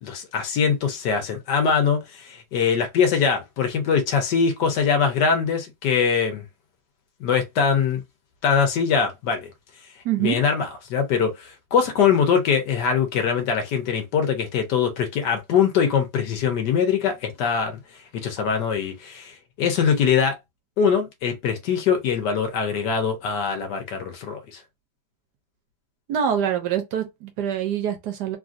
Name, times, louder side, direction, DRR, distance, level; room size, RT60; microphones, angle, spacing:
voice 1, 0.0-6.4 7.2-8.0 8.4-9.5 10.2-20.4 20.8-24.6, left 6 dB, 80° left, 1.3 m, -22 dB
voice 2, 10.0-10.4 26.1-28.4, right 9 dB, 80° right, 1.2 m, -25 dB
3.2 x 2.5 x 2.5 m
omnidirectional pair, 1.8 m